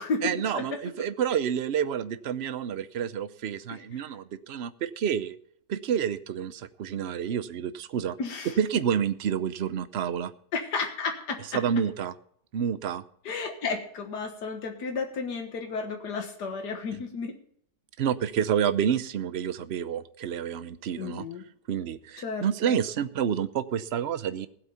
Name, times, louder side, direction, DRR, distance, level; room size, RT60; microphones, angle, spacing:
voice 1, 0.2-5.4 5.7-8.2 8.6-10.3 11.5-12.1 12.5-13.0 18.0-21.3 21.7-24.5, right 8 dB, 55° right, 13 dB, 0.8 m, -29 dB
voice 2, 8.2-8.5 10.5-11.4 13.3-17.3 21.0-21.4 22.2-22.8, left 4 dB, 90° left, 4 dB, 2.0 m, -32 dB
16.0 x 8.2 x 5.6 m, 0.66 s
omnidirectional pair, 1.7 m